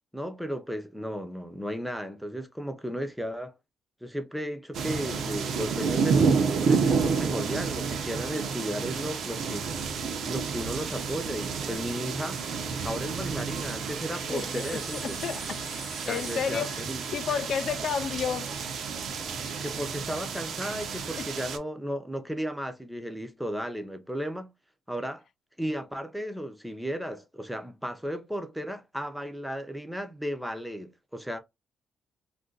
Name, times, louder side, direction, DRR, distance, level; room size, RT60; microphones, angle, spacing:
voice 1, 0.1-3.5 4.0-9.7 10.3-12.4 12.8-15.2 16.1-17.0 19.6-24.5 24.9-25.2 25.6-31.4, equal, ahead, 0.6 m, -34 dB
sound 1, 4.7-21.6, right 5 dB, 65° right, 0.6 m, -30 dB
voice 2, 14.3-16.9 17.1-18.5 21.2-21.3, left 7 dB, 60° left, 0.3 m, -32 dB
sound 2, 14.4-18.7, left 2 dB, 25° left, 1.0 m, -47 dB
2.5 x 2.2 x 3.8 m
cardioid pair, 90°, 0 cm